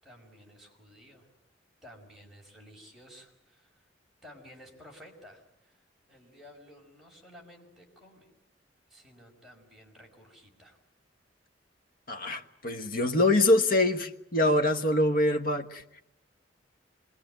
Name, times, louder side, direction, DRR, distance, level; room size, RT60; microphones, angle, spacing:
voice 1, 0.0-1.3 1.8-3.9 4.2-8.3 8.9-10.8, equal, ahead, -1 dB, 5.5 m, -53 dB
voice 2, 12.1-16.0, left 1 dB, 50° left, 7 dB, 1.3 m, -25 dB
26.0 x 21.5 x 9.1 m, 0.81 s
head